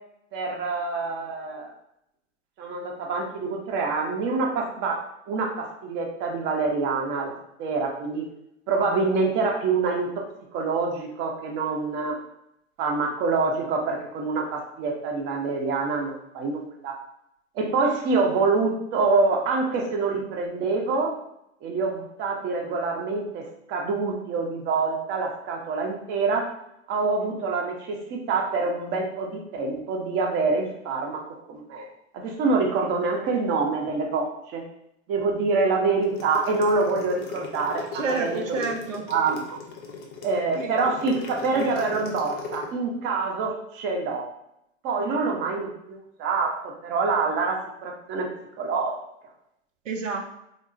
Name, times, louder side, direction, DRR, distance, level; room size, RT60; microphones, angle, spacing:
voice 1, 0.3-1.7 2.6-8.3 8.7-10.2 10.5-12.1 12.8-16.9 17.5-21.1 21.6-26.5 26.9-31.8 32.1-34.6 35.1-38.7 39.1-39.6 40.2-44.3 44.8-46.5 46.8-48.3 48.6-48.9, right 4 dB, 30° right, 1 dB, 0.6 m, -26 dB
sound 1, 36.0-42.7, left 5 dB, 25° left, 0.5 m, -37 dB
voice 2, 37.9-39.1 40.6-40.7 45.0-45.1 49.9-50.2, right 4 dB, 85° right, 3 dB, 0.6 m, -29 dB
3.5 x 2.0 x 2.6 m, 0.80 s
figure-of-eight pair, 95°, 37 cm